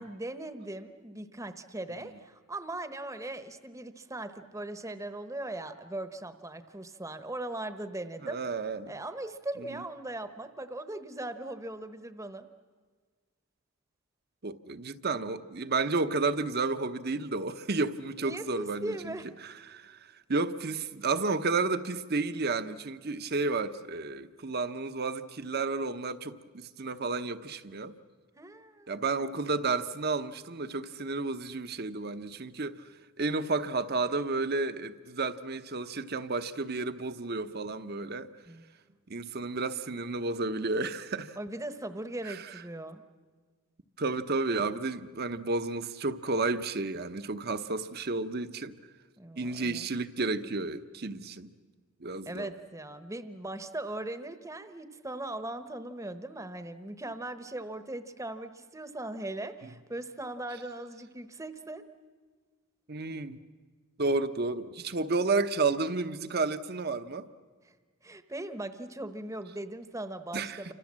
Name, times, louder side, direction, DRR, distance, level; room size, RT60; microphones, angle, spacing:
voice 1, 0.0-8.4 8.9-12.5 18.2-19.3 28.4-29.3 38.5-38.6 41.4-43.0 49.2-49.9 52.3-61.8 67.6-67.7 68.0-70.7, right 1 dB, 15° right, 1.0 m, -39 dB
voice 2, 8.2-9.0 14.4-19.2 19.4-20.0 20.3-27.9 28.9-32.8 33.2-38.3 39.1-41.4 42.3-42.4 44.0-48.8 49.4-51.5 52.0-52.5 62.9-63.4 64.0-67.3 70.3-70.7, right 3 dB, 45° right, 0.9 m, -31 dB
29.0 x 25.5 x 7.5 m
head